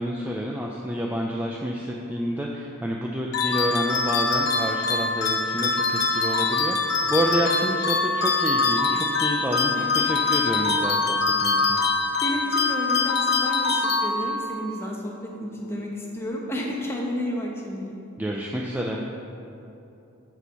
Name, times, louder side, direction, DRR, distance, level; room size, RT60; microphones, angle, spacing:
voice 1, 0.0-11.8 18.2-19.0, equal, 10° right, -2 dB, 0.3 m, -29 dB
sound 1, 3.3-14.6, left 3 dB, 50° left, 0.7 m, -24 dB
voice 2, 9.7-10.1 12.2-18.0, left 1 dB, 10° left, -1 dB, 0.8 m, -31 dB
6.9 x 4.5 x 6.8 m, 2.9 s
head